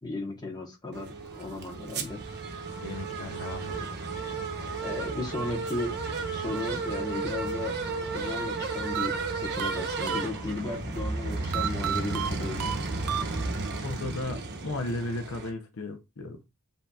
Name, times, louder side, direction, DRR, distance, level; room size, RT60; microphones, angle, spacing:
voice 1, 0.0-2.2 4.8-6.0 6.3-7.7 8.1-12.8, left 2 dB, 20° left, 1.0 m, -35 dB
sound 1, 0.9-15.5, right 3 dB, 50° right, 0.9 m, -33 dB
voice 2, 2.8-3.9 13.8-16.4, left 2 dB, 65° left, 0.6 m, -35 dB
sound 2, 8.9-10.8 11.5-13.8, right 8 dB, 80° right, 0.4 m, -33 dB
7.7 x 2.8 x 2.3 m
head